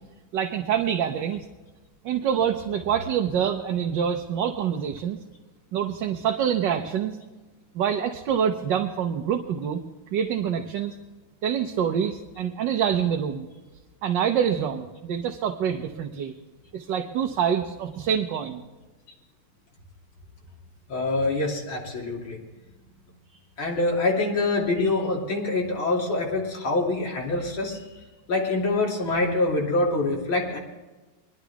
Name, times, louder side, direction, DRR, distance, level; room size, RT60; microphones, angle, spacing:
voice 1, 0.3-1.5 2.0-5.2 5.7-7.2 7.7-9.8 10.1-10.9 11.4-13.5 14.0-16.3 16.7-18.6, right 8 dB, 65° right, 4 dB, 1.4 m, -26 dB
voice 2, 20.9-22.4 23.6-27.8 28.3-30.6, left 2 dB, 70° left, -3 dB, 3.6 m, -25 dB
21.0 x 11.5 x 3.5 m, 1.2 s
omnidirectional pair, 2.3 m